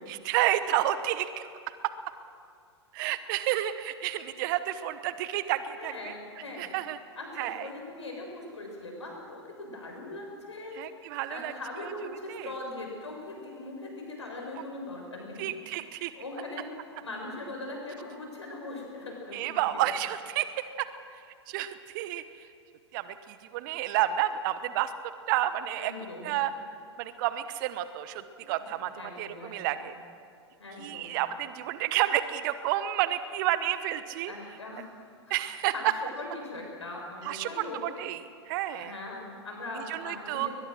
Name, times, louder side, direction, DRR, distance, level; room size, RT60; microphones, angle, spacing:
voice 1, 0.1-1.5 1.8-1.9 2.9-6.1 6.6-7.0 7.4-7.7 10.7-11.5 11.8-11.9 12.3-12.5 15.4-16.1 19.3-21.2 21.5-22.5 22.9-25.9 26.2-26.5 27.0-30.0 30.8-34.3 35.3-35.9 37.2-38.9 39.7-40.5, right 13 dB, 45° right, 13 dB, 1.0 m, -30 dB
voice 2, 5.8-6.8 7.2-15.4 16.1-19.8 25.8-26.3 28.7-29.8 30.6-31.2 34.3-35.3 35.7-35.8 36.2-37.8 38.8-40.5, left 2 dB, 80° left, 0 dB, 6.8 m, -41 dB
21.5 x 21.5 x 6.4 m, 2.4 s
figure-of-eight pair, 95°, 15 cm